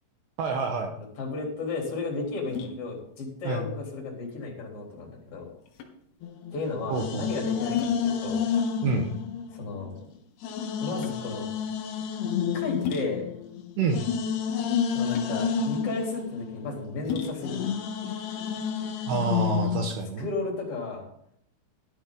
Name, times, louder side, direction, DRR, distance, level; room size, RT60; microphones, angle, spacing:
voice 1, 0.4-0.9 3.4-3.7 6.9-7.3 8.8-9.1 13.8-14.0 19.1-20.3, right 4 dB, 70° right, 3 dB, 2.7 m, -27 dB
sound 1, 0.9-19.5, left 6 dB, 85° left, 4.3 m, -41 dB
voice 2, 1.0-5.5 6.5-8.4 9.5-9.9 10.8-11.5 12.5-13.3 14.9-17.7 20.2-21.1, left 3 dB, 30° left, -2 dB, 4.0 m, -33 dB
sound 2, 6.2-10.0 10.4-19.8, left 7 dB, 70° left, 2.7 m, -30 dB
13.0 x 12.5 x 4.0 m, 0.71 s
omnidirectional pair, 5.9 m